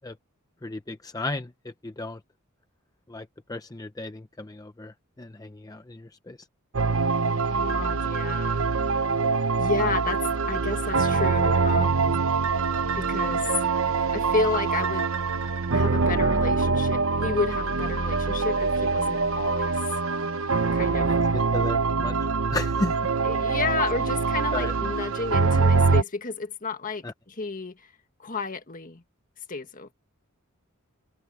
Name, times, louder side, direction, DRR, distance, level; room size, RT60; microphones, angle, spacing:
voice 1, 0.6-1.5 1.8-2.2 3.1-6.4 21.1-21.2 21.5-22.1 22.5-23.0 24.5-24.7 27.0-27.1, left 2 dB, 15° left, 0.6 m, -34 dB
sound 1, 6.7-26.0, right 4 dB, 70° right, 0.8 m, -24 dB
voice 2, 7.2-8.7 9.6-12.2 13.0-13.5 13.9-15.1 15.7-19.8 20.7-21.1 23.2-27.9 28.2-29.0 29.5-29.9, left 4 dB, 40° left, 1.7 m, -31 dB
head